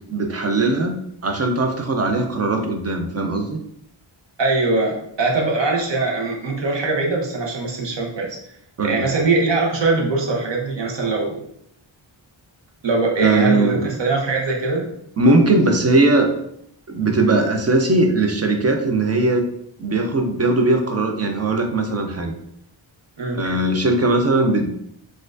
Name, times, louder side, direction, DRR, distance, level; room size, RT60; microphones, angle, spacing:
voice 1, 0.1-1.0 1.2-3.6 8.8-9.0 13.2-13.8 15.2-16.3 16.9-19.4 19.8-22.3 23.3-24.7, right 2 dB, 35° right, 4 dB, 0.4 m, -19 dB
voice 2, 4.4-8.4 8.8-11.4 12.8-14.9 23.2-23.4, right 3 dB, 60° right, 0 dB, 0.9 m, -22 dB
4.2 x 2.4 x 2.4 m, 0.73 s
wide cardioid pair, 145°, 49 cm